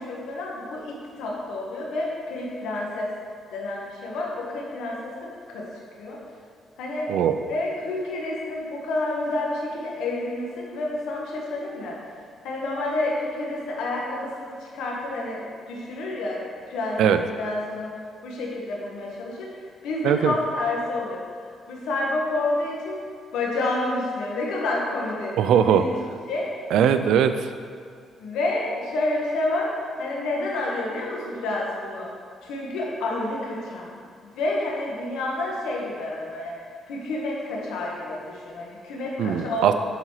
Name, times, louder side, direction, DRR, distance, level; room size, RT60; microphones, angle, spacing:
voice 1, 0.0-3.1 3.5-5.7 6.0-6.2 6.8-7.2 7.5-12.0 12.4-17.9 18.2-23.0 23.3-25.9 26.3-26.6 28.2-32.1 32.4-33.9 34.2-36.6 36.9-39.7, left 2 dB, 85° left, -2 dB, 1.4 m, -29 dB
voice 2, 20.0-20.3 25.4-25.8 26.7-27.5 39.2-39.7, right 8 dB, 80° right, 10 dB, 0.4 m, -20 dB
7.5 x 4.2 x 4.8 m, 2.1 s
cardioid pair, 90°, 0 cm